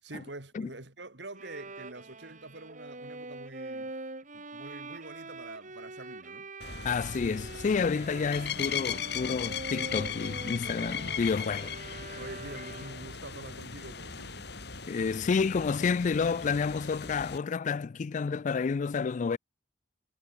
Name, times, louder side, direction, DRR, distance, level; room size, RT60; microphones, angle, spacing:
voice 1, 0.0-4.0 4.3-6.5 10.8-11.1 12.1-14.5, right 2 dB, 70° right, 3.4 m, -46 dB
Bowed string instrument, 1.3-13.2, right 2 dB, 45° right, 6.1 m, -44 dB
sound 1, 6.6-17.4, left 7 dB, 65° left, 5.0 m, -38 dB
voice 2, 6.8-11.7 14.9-19.4, left 5 dB, 45° left, 0.4 m, -29 dB
head